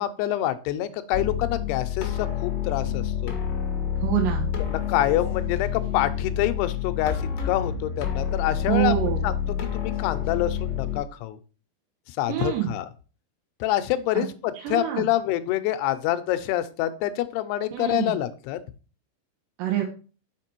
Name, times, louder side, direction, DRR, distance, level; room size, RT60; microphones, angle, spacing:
voice 1, 0.0-3.3 4.7-8.9 9.2-9.3 9.7-11.4 12.1-12.9 13.6-18.6, left 13 dB, 80° left, 11 dB, 2.5 m, -26 dB
sound 1, 1.1-11.0, left 8 dB, 65° left, 1.4 m, -28 dB
voice 2, 4.0-4.5 8.7-9.2 12.3-12.7 14.1-14.2 14.6-15.1 17.7-18.2 19.6-19.9, right 12 dB, 85° right, 1 dB, 3.2 m, -26 dB
6.6 x 5.2 x 4.5 m, 0.36 s
omnidirectional pair, 5.0 m